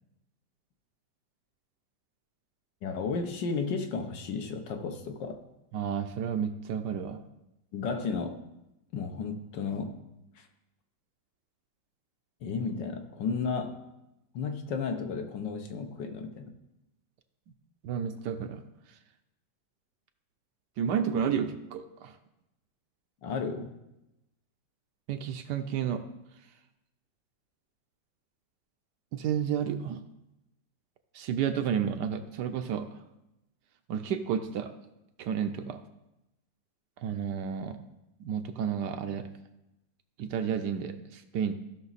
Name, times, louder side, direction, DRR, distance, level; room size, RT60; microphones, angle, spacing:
voice 1, 2.8-5.4 7.7-8.4 8.9-9.9 10.4-10.5 12.4-13.8 14.3-16.5 23.2-23.7, left 5 dB, 70° left, 6 dB, 1.6 m, -33 dB
voice 2, 5.7-7.2 17.8-18.6 20.8-22.1 25.1-26.0 29.1-30.0 31.1-32.9 33.9-34.7 35.2-35.8 37.0-37.8 38.2-39.3 40.2-41.5, right 8 dB, 70° right, 8 dB, 1.2 m, -31 dB
15.0 x 6.0 x 4.1 m, 0.92 s
omnidirectional pair, 2.1 m